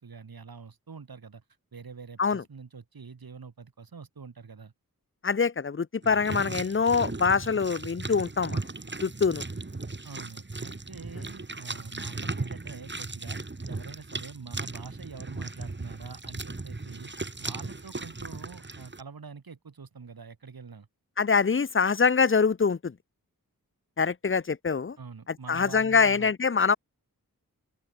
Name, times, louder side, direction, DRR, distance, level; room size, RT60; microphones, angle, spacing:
voice 1, 0.0-1.4 1.7-4.7 10.0-13.4 13.7-17.1 17.4-20.9 25.0-26.3, right 5 dB, 85° right, 1.6 m, -45 dB
voice 2, 5.2-8.7 9.0-9.4 21.2-22.9 24.0-25.0 25.5-26.8, left 5 dB, 35° left, 0.6 m, -24 dB
sound 1, 6.0-19.0, right 3 dB, 30° right, 1.4 m, -37 dB
open air
wide cardioid pair, 55°, 35 cm